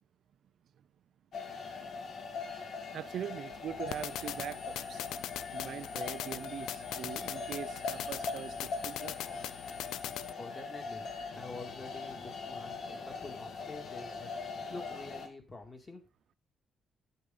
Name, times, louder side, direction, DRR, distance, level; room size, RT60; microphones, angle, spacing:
sound 1, 1.3-15.3, left 4 dB, 50° left, 1.9 m, -41 dB
voice 1, 2.9-5.0 5.5-9.5, right 9 dB, 55° right, 0.4 m, -42 dB
sound 2, 3.9-10.3, left 11 dB, 90° left, 0.5 m, -41 dB
voice 2, 10.4-11.1 11.3-16.0, left 3 dB, 25° left, 2.1 m, -47 dB
9.9 x 8.1 x 3.8 m
cardioid pair, 160°, 0 cm